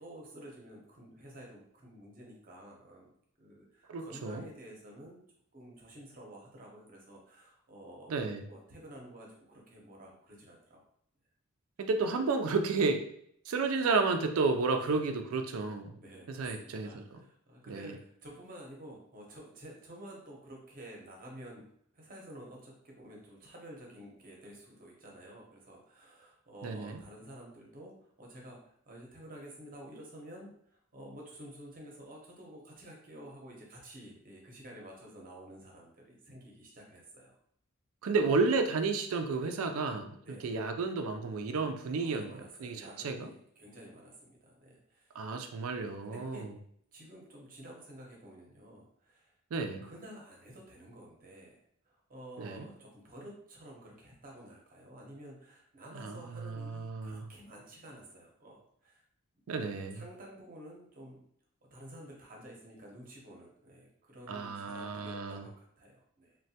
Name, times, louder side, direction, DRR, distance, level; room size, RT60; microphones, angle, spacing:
voice 1, 0.0-5.2 5.5-8.2 8.5-10.8 14.8-15.1 15.9-21.7 21.9-37.3 40.2-40.6 42.0-45.1 46.0-46.5 46.9-49.3 49.8-51.6 51.8-59.0 59.9-61.2 61.6-66.4, right 1 dB, 40° right, -1 dB, 0.7 m, -51 dB
voice 2, 3.9-4.4 8.1-8.4 11.8-13.0 13.5-15.9 16.3-17.2 17.7-18.0 26.6-27.0 38.0-40.2 40.4-43.3 45.2-46.5 49.5-49.8 52.4-52.7 56.0-57.3 59.5-60.0 64.3-65.5, right 4 dB, 70° right, 6 dB, 0.4 m, -32 dB
3.2 x 2.2 x 2.7 m, 0.67 s
head